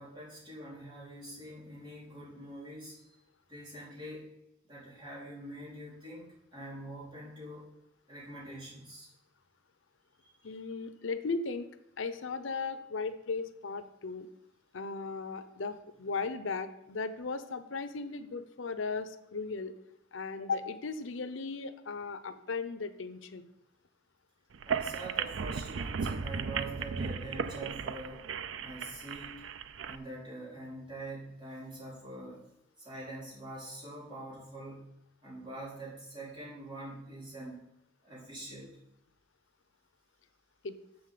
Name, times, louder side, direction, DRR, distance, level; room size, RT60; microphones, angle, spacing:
voice 1, 0.0-3.0 3.5-4.3 4.6-7.7 8.1-9.1 24.7-28.2 28.6-29.4 29.8-32.4 32.8-34.9 35.2-37.6 38.0-38.7, right 1 dB, 25° right, -7 dB, 4.1 m, -44 dB
voice 2, 10.4-11.7 12.0-14.3 14.7-19.7 20.1-23.5 40.6-40.8, left 4 dB, 90° left, 11 dB, 0.7 m, -37 dB
sound 1, 24.5-30.0, right 6 dB, 85° right, 0.5 m, -36 dB
7.1 x 7.1 x 6.8 m, 0.81 s
head